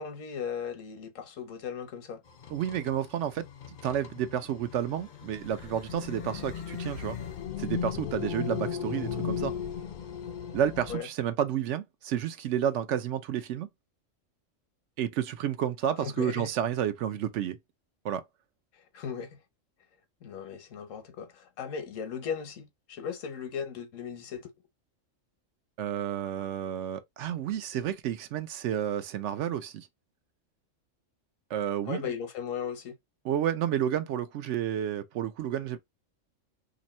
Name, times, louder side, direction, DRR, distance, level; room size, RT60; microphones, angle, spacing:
voice 1, 0.0-2.2 10.9-11.1 16.0-16.5 18.9-19.4 20.2-24.5 31.9-33.0, left 7 dB, 80° left, 1.2 m, -37 dB
sound 1, 2.3-11.0, left 7 dB, 60° left, 0.5 m, -37 dB
voice 2, 2.5-3.4 3.8-7.2 7.6-9.5 10.5-13.7 15.0-17.6 18.0-18.2 25.8-29.9 31.5-32.0 33.2-35.8, right 10 dB, 70° right, 0.9 m, -30 dB
2.9 x 2.6 x 4.1 m
omnidirectional pair, 1.3 m